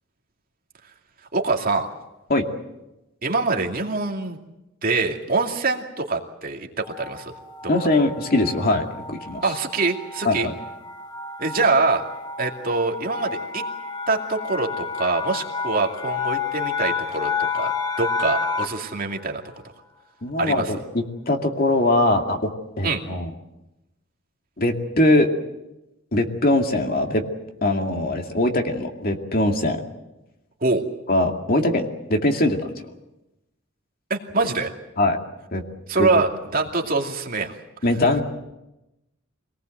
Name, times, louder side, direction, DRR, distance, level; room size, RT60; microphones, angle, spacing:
voice 1, 1.3-1.9 3.2-4.4 4.8-7.3 9.4-10.5 11.4-12.0 12.4-13.6 14.1-19.4 20.4-20.7 22.8-23.0 30.6-30.8 34.1-34.7 35.9-37.5, right 3 dB, 45° right, 1 dB, 2.5 m, -24 dB
sound 1, 6.8-18.9, left 5 dB, 20° left, 1.8 m, -30 dB
voice 2, 7.7-9.4 10.2-10.5 20.2-22.5 22.8-23.3 24.6-25.3 26.1-27.2 27.6-29.8 31.1-32.6 35.0-35.2 35.5-35.6 36.0-36.2 37.8-38.2, left 1 dB, 50° left, 4 dB, 2.3 m, -21 dB
25.5 x 19.0 x 7.8 m, 0.96 s
head